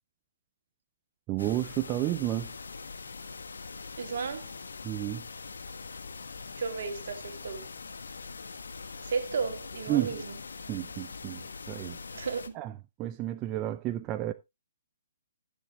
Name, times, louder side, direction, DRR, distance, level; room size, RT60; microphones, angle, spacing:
voice 1, 1.3-2.5 4.8-5.2 9.9-10.2 10.7-11.4 11.7-12.0 12.5-12.7 13.0-14.3, right 14 dB, 25° right, 0.6 m, -31 dB
sound 1, 1.4-12.5, left 4 dB, 80° left, 1.4 m, -43 dB
voice 2, 4.0-4.5 6.6-7.7 9.0-10.2 12.1-12.5, right 5 dB, 65° right, 2.2 m, -33 dB
13.5 x 7.3 x 3.0 m
hypercardioid pair, 145°, 0 cm